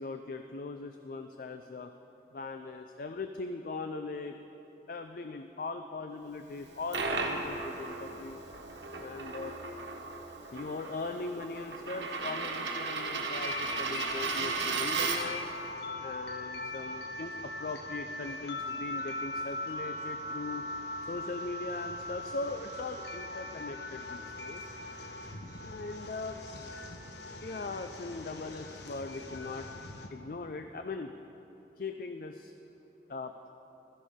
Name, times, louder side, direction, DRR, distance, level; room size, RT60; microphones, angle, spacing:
voice 1, 0.0-1.9 2.3-4.4 4.9-8.4 9.0-9.5 10.5-15.5 16.0-20.6 21.0-24.7 25.6-26.7 27.4-29.7 30.1-31.1 31.8-32.5 33.1-33.3, left 3 dB, 50° left, 7 dB, 0.4 m, -40 dB
Coin (dropping), 6.6-15.5, right 4 dB, 80° right, 1.3 m, -35 dB
sound 1, 13.4-30.1, left 1 dB, 75° left, 1.0 m, -40 dB
16.0 x 13.0 x 3.6 m, 3.0 s
head